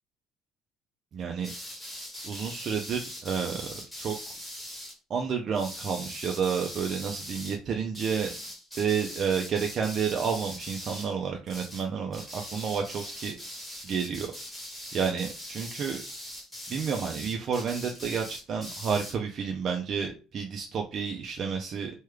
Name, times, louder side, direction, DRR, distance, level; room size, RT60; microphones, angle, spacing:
voice 1, 1.1-1.5 2.2-3.6 4.0-4.1 5.1-8.3 8.8-13.4 13.8-14.3 14.9-16.0 16.7-21.9, right 6 dB, 40° right, 2 dB, 0.4 m, -30 dB
sound 1, 1.4-5.0 5.5-7.6 7.9-11.2 11.5-11.9 12.1-19.2, equal, 5° left, 1.2 m, -41 dB
3.2 x 2.2 x 3.2 m, 0.34 s
cardioid pair, 150°, 0 cm